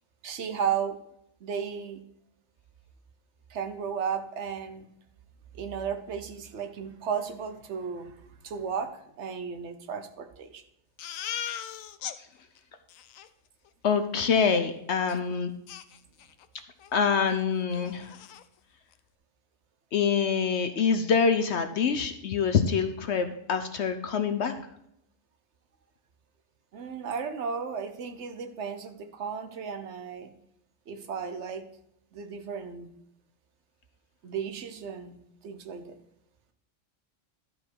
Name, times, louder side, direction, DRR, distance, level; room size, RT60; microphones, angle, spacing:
voice 1, 0.2-1.0 1.4-2.0 3.5-4.9 5.5-10.6 26.7-30.3 30.9-31.7 32.1-32.9 34.2-35.2 35.4-35.9, right 7 dB, 60° right, 8 dB, 1.1 m, -34 dB
Crying sobbing, 11.0-12.2 12.6-12.7 12.9-13.3 15.1-15.2 15.7-16.5 16.8-17.0 17.3-17.4 17.8-18.4, left 10 dB, 85° left, 1.0 m, -38 dB
voice 2, 13.8-15.5 16.9-18.1 19.9-24.5, left 6 dB, 60° left, 8 dB, 0.9 m, -25 dB
12.0 x 5.2 x 4.6 m, 0.76 s
omnidirectional pair, 1.4 m